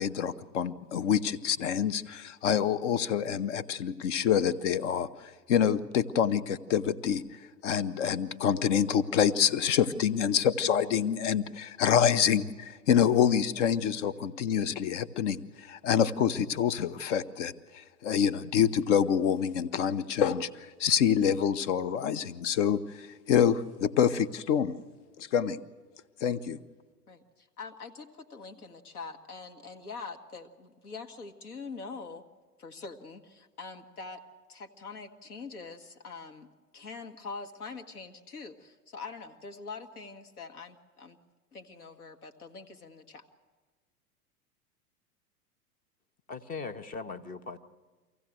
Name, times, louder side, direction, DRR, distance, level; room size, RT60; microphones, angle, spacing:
voice 1, 0.0-7.2 7.6-24.8 25.2-25.6 26.2-26.6, left 8 dB, 50° left, 19 dB, 0.9 m, -27 dB
voice 2, 27.1-32.2 32.6-34.2 34.5-36.5 36.7-41.2 41.5-43.2, left 4 dB, 70° left, 5 dB, 1.7 m, -44 dB
voice 3, 46.3-47.6, left 4 dB, 20° left, 11 dB, 0.8 m, -39 dB
24.5 x 15.5 x 7.6 m, 1.4 s
figure-of-eight pair, 95°, 46 cm